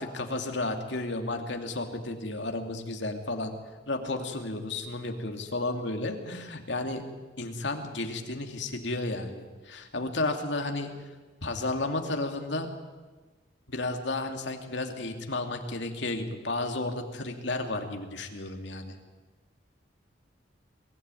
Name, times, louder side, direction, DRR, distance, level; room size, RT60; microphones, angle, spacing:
voice 1, 0.0-3.5 3.9-7.0 7.4-10.9 11.4-12.7 13.7-18.9, left 2 dB, 65° left, 5 dB, 2.5 m, -32 dB
23.0 x 16.0 x 9.1 m, 1.3 s
head